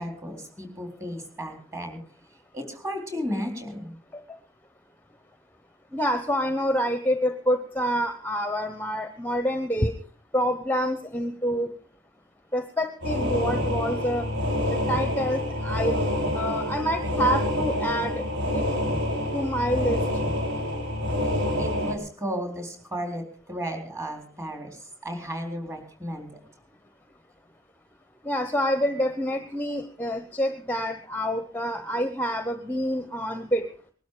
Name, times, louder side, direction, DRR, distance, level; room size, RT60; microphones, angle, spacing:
voice 1, 0.0-2.0 2.5-4.0 21.6-26.3, equal, 15° right, 3 dB, 4.0 m, -34 dB
voice 2, 5.9-9.9 10.3-11.7 12.5-14.2 14.9-16.1 16.3-18.3 18.5-18.7 19.3-20.0 28.2-33.7, equal, 10° left, 8 dB, 0.9 m, -27 dB
sound 1, 13.0-21.9, left 1 dB, 60° right, 3.2 m, -27 dB
20.5 x 12.0 x 5.0 m, 0.43 s
head